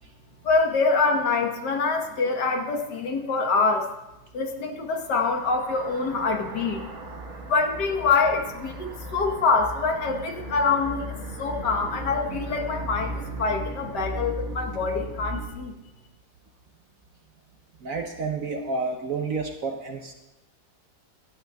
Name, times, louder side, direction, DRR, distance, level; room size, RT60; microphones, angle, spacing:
voice 1, 0.4-3.9 4.3-6.9 7.5-11.1 11.4-15.7, left 4 dB, 65° left, 4 dB, 1.7 m, -25 dB
sound 1, 5.0-15.5, right 1 dB, 45° right, 1.4 m, -36 dB
voice 2, 17.8-20.1, right 4 dB, 60° right, 4 dB, 1.0 m, -30 dB
24.0 x 8.9 x 2.3 m, 0.98 s
omnidirectional pair, 2.0 m